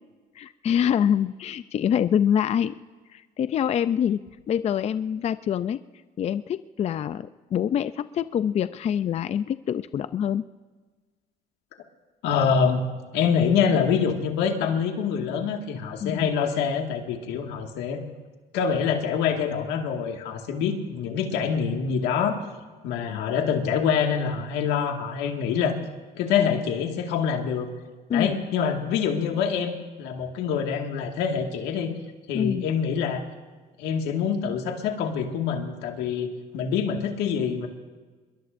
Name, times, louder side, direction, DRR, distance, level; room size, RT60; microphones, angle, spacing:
voice 1, 0.4-2.8 3.1-5.8 6.2-10.4 16.0-16.3 28.1-28.4 32.3-32.6, left 9 dB, 40° left, 13 dB, 0.4 m, -25 dB
voice 2, 12.2-12.8 13.1-18.0 18.5-22.4 22.8-25.8 26.2-27.7 28.1-31.9 32.3-33.3 33.8-36.3 36.5-37.7, left 7 dB, 90° left, 3 dB, 1.9 m, -25 dB
25.5 x 22.0 x 2.6 m, 1.4 s
cardioid pair, 110°, 17 cm